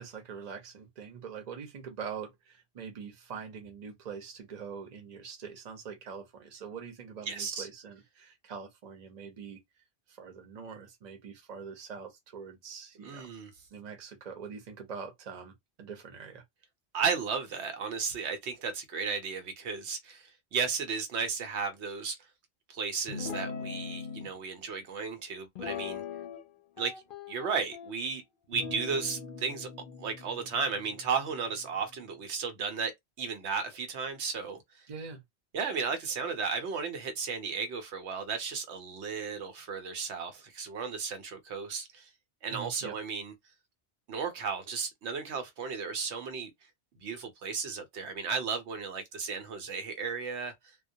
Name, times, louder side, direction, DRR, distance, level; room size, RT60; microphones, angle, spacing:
voice 1, 0.0-9.6 10.1-13.3 13.7-15.5 15.8-16.4 34.9-35.2 42.5-42.9, right 6 dB, 45° right, 0.7 m, -43 dB
voice 2, 7.3-7.7 13.0-13.5 16.9-22.2 22.7-26.0 26.8-26.9 27.3-28.2 28.5-29.7 30.0-32.9 33.2-34.9 35.5-42.1 42.4-43.3 44.1-46.5 46.9-50.8, right 5 dB, 80° right, 1.0 m, -34 dB
Guitar, 23.1-24.3 25.5-26.5 26.8-27.9 28.5-32.0, left 5 dB, 60° left, 0.7 m, -41 dB
2.2 x 2.2 x 2.6 m
omnidirectional pair, 1.1 m